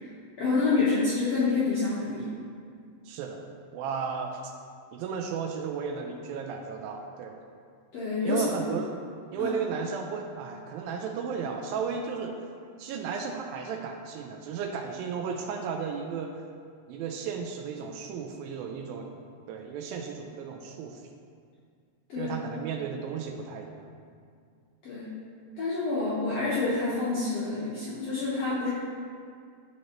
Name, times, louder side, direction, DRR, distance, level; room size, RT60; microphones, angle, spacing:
voice 1, 0.4-2.3 7.9-8.4 9.4-9.5 22.1-22.3 24.8-25.1 25.6-28.7, left 3 dB, 65° left, -10 dB, 1.6 m, -27 dB
voice 2, 3.1-3.5 3.7-4.5 4.9-7.4 8.2-8.9 9.3-12.4 12.8-16.4 16.9-19.1 19.5-21.0 22.2-23.9, right 6 dB, 80° right, 3 dB, 2.2 m, -34 dB
13.0 x 4.3 x 3.0 m, 2.2 s
omnidirectional pair, 4.4 m